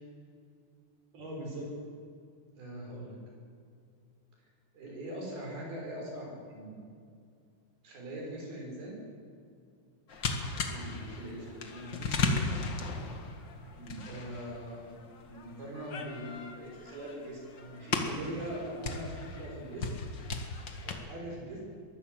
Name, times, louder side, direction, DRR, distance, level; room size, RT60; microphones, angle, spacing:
voice 1, 1.1-1.7 2.6-3.2 4.7-6.8 7.8-9.0 10.6-12.5 13.8-14.9 15.2-19.9 20.8-21.6, right 1 dB, 60° right, -1 dB, 7.7 m, -41 dB
sound 1, 10.1-20.9, left 4 dB, 55° left, 1.2 m, -37 dB
22.5 x 18.5 x 7.9 m, 2.3 s
omnidirectional pair, 5.0 m